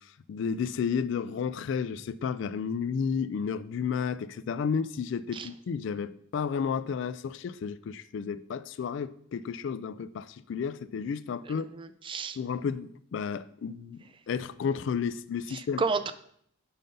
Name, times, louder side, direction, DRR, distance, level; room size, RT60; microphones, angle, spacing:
voice 1, 0.3-11.7 12.4-15.8, left 6 dB, 60° left, 0.3 m, -32 dB
voice 2, 11.6-12.4 15.5-16.1, right 4 dB, 25° right, 0.3 m, -32 dB
5.6 x 5.5 x 5.2 m
head